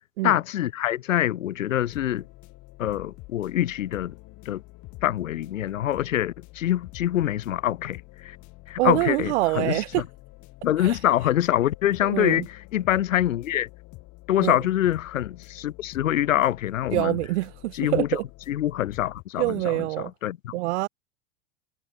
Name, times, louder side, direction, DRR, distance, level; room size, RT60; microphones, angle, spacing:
voice 1, 0.2-2.2 2.8-4.1 4.5-4.6 5.0-8.4 8.7-10.0 10.6-13.7 14.3-17.2 17.7-18.2 18.5-20.5, left 12 dB, 80° left, 1.0 m, -25 dB
sound 1, 1.8-19.2, left 21 dB, 45° left, 4.7 m, -46 dB
voice 2, 8.8-10.0 10.8-10.9 12.0-12.4 14.4-14.6 16.9-18.2 19.4-20.1 20.5-20.9, right 20 dB, 60° right, 0.6 m, -25 dB
hypercardioid pair, 95°, 38 cm